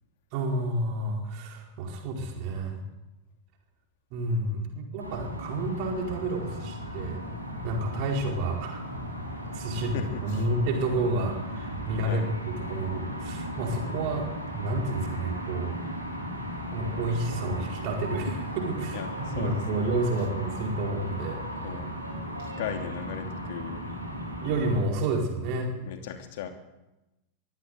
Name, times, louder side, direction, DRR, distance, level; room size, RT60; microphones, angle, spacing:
voice 1, 0.3-2.8 4.1-7.2 7.6-8.8 9.4-14.3 14.5-15.8 16.7-19.0 19.4-21.4 24.4-25.8, right 2 dB, 45° right, 2 dB, 4.6 m, -30 dB
sound 1, 5.0-24.8, equal, 90° right, 5.6 m, -36 dB
voice 2, 9.7-10.5 12.1-12.3 18.9-19.9 21.6-21.9 22.4-24.1 25.8-26.5, left 7 dB, 50° left, 6 dB, 2.8 m, -38 dB
22.5 x 15.0 x 8.2 m, 0.99 s
figure-of-eight pair, 90°, 0 cm